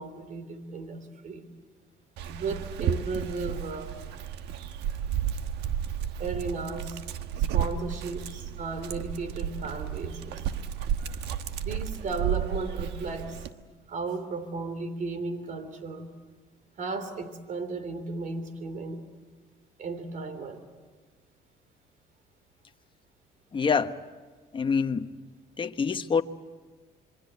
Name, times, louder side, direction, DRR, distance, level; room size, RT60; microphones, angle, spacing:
voice 1, 0.0-1.4 2.3-3.9 6.2-7.0 7.5-10.4 11.5-13.4 13.9-16.1 16.8-19.0 19.8-20.6, right 3 dB, 50° right, 3.4 m, -35 dB
Dog, 2.2-13.5, right 9 dB, 85° right, 1.3 m, -32 dB
voice 2, 23.5-24.0 24.5-25.1 25.6-26.2, left 5 dB, 30° left, 1.2 m, -26 dB
27.0 x 23.0 x 8.2 m
cardioid pair, 110°, 17 cm